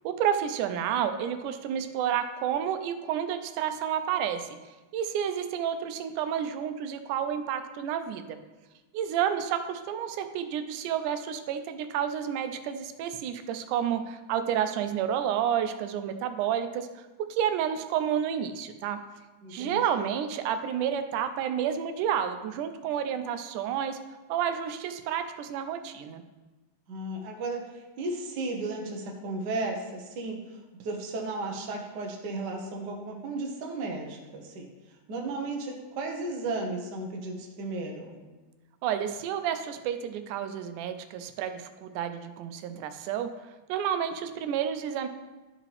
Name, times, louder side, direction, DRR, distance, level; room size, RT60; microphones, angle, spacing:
voice 1, 0.0-4.6 4.9-8.4 8.9-17.0 17.3-19.0 19.5-24.0 24.3-26.2 38.8-43.3 43.7-45.1, right 9 dB, 85° right, 9 dB, 2.1 m, -30 dB
voice 2, 19.4-20.1 26.9-34.7 35.1-38.2, right 2 dB, 70° right, 1 dB, 1.0 m, -34 dB
12.0 x 4.9 x 3.3 m, 1.2 s
omnidirectional pair, 3.5 m